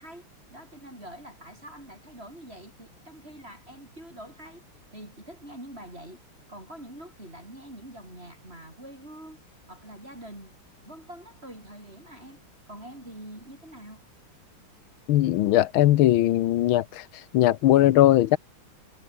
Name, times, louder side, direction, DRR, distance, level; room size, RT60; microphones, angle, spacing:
voice 1, 0.0-4.6 4.9-6.2 6.5-9.4 9.7-10.5 10.8-12.4 12.7-14.0, right 1 dB, 25° right, 8.2 m, -45 dB
voice 2, 15.1-17.0 17.3-18.4, left 14 dB, 75° left, 1.6 m, -19 dB
omnidirectional pair, 2.4 m